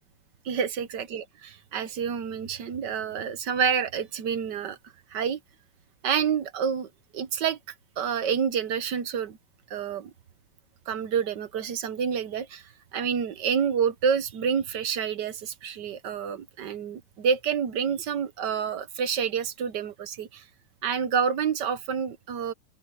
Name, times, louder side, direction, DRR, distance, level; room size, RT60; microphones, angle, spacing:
voice 1, 0.4-1.2 1.7-4.8 5.1-5.4 6.0-7.6 8.0-9.4 9.7-10.1 10.9-20.4 20.8-22.5, right 7 dB, 60° right, 1.4 m, -28 dB
open air
omnidirectional pair, 2.4 m